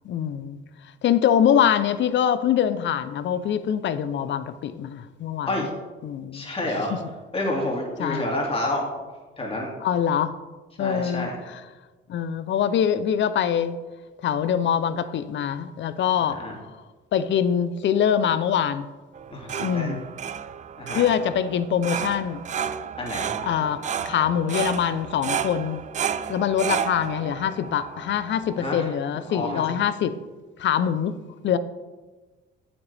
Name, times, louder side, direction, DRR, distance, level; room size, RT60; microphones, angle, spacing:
voice 1, 0.0-0.6 1.0-5.7 6.0-6.5 6.9-7.0 8.0-8.2 9.8-10.3 10.8-11.6 12.1-13.8 14.2-16.4 17.1-18.9 19.6-20.0 20.9-22.5 23.4-25.8 26.3-30.2 30.6-31.1 31.4-31.6, left 9 dB, 60° left, 13 dB, 0.6 m, -24 dB
voice 2, 6.3-6.9 7.3-8.8 9.4-9.7 10.8-11.4 16.2-16.5 19.3-19.9 20.8-21.0 23.0-23.3 28.6-28.9 29.1-29.6, left 1 dB, 25° left, -1 dB, 2.4 m, -29 dB
sound 1, 19.1-28.9, right 8 dB, 35° right, 0.4 m, -32 dB
8.7 x 8.4 x 3.4 m, 1.2 s
cardioid pair, 100°, 21 cm